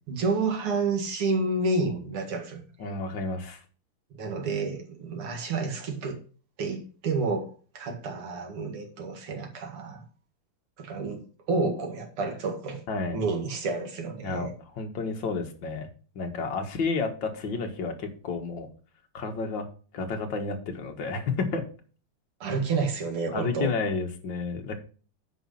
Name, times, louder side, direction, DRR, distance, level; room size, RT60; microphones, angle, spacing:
voice 1, 0.1-2.6 4.2-6.2 6.6-10.0 10.8-12.8 13.1-14.5 22.4-23.7, right 3 dB, 85° right, 2.9 m, -29 dB
voice 2, 2.8-3.6 12.9-13.2 14.2-15.9 16.2-18.7 19.1-19.7 19.9-21.7 23.3-24.7, left 4 dB, 60° left, 2.2 m, -31 dB
9.1 x 5.4 x 5.7 m
omnidirectional pair, 2.4 m